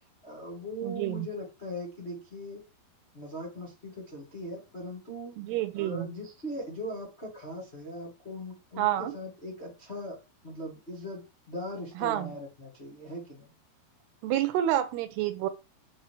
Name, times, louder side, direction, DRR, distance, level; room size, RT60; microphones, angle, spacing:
voice 1, 0.2-2.6 3.1-5.3 5.7-10.2 10.4-13.5, equal, 25° left, 1.4 m, -40 dB
voice 2, 0.8-1.3 5.4-6.1 8.8-9.1 12.0-12.3 14.2-15.5, right 12 dB, 85° right, 2.7 m, -28 dB
7.5 x 4.4 x 4.8 m
omnidirectional pair, 4.9 m